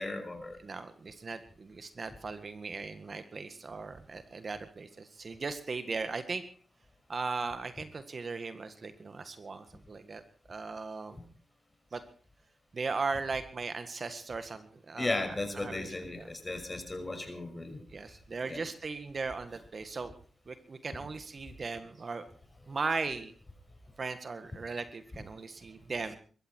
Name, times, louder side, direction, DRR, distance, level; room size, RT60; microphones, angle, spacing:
voice 1, 0.0-0.6 15.0-17.8 18.5-18.6, left 2 dB, 25° left, 7 dB, 6.0 m, -35 dB
voice 2, 0.6-6.4 7.1-10.2 10.5-11.2 11.9-12.0 12.7-15.1 15.5-15.9 16.1-16.3 17.9-20.1 20.5-22.2 22.7-23.3 24.0-26.2, right 4 dB, 50° right, 10 dB, 1.8 m, -37 dB
23.0 x 13.5 x 4.6 m, 0.41 s
cardioid pair, 55°, 0 cm